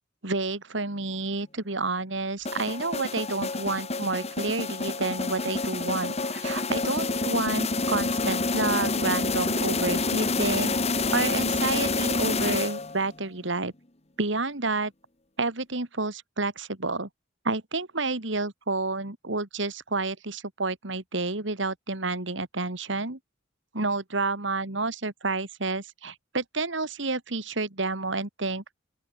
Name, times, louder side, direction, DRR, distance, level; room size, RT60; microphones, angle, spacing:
voice 1, 0.2-10.7 11.1-13.7 14.2-14.9 15.4-17.1 17.4-23.2 23.7-28.8, right 3 dB, 65° right, 2.4 m, -29 dB
sound 1, 2.4-13.1, left 3 dB, 30° left, 1.7 m, -28 dB
open air
head